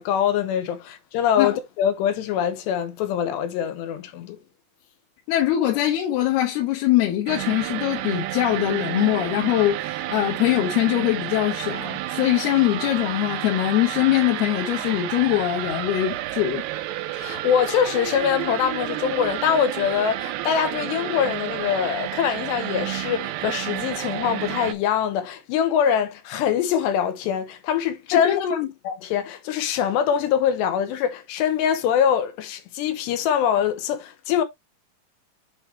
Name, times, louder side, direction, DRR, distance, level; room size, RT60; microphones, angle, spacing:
voice 1, 0.0-4.4 17.1-28.4 28.8-34.4, left 8 dB, 90° left, 3.3 m, -23 dB
voice 2, 5.3-16.6 28.1-28.7, left 13 dB, 75° left, 2.9 m, -22 dB
sound 1, 7.3-24.7, right 14 dB, 80° right, 2.7 m, -30 dB
7.8 x 4.6 x 3.2 m
omnidirectional pair, 4.9 m